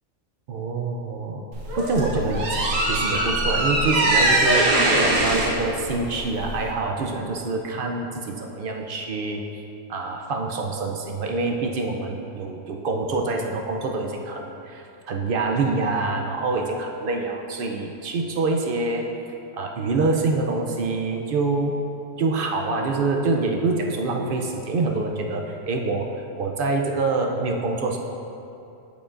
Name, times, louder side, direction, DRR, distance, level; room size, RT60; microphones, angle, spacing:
voice 1, 0.5-1.4 1.8-9.4 9.9-19.1 19.5-21.7 22.2-26.1 26.4-28.0, right 3 dB, 60° right, 2 dB, 0.6 m, -26 dB
sound 1, 1.5-6.7, right 1 dB, 80° right, 1.3 m, -22 dB
8.1 x 7.1 x 2.5 m, 2.7 s
omnidirectional pair, 1.3 m